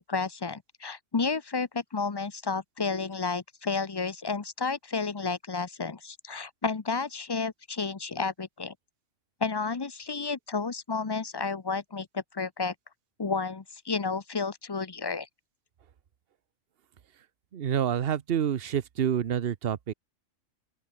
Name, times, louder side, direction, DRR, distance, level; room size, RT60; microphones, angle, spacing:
voice 1, 0.0-8.7 9.4-12.7 13.2-15.3, left 4 dB, 25° left, 0.6 m, -31 dB
voice 2, 17.5-19.9, right 9 dB, 50° right, 1.0 m, -28 dB
open air
omnidirectional pair, 1.4 m